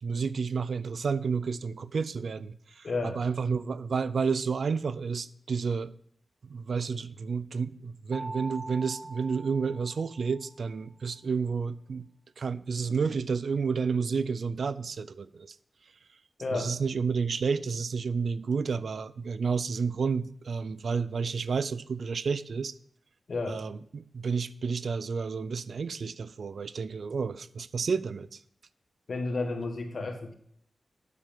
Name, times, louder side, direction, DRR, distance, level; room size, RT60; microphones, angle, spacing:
voice 1, 0.0-5.9 6.4-12.1 12.4-15.6 16.5-22.7 23.5-28.4, right 5 dB, 75° right, 0.4 m, -30 dB
voice 2, 2.8-3.2 16.4-16.7 23.3-23.6 29.1-30.3, left 3 dB, 70° left, 1.6 m, -32 dB
Mallet percussion, 8.1-10.6, right 2 dB, 20° right, 1.0 m, -43 dB
8.3 x 7.1 x 5.2 m
cardioid pair, 45°, 0 cm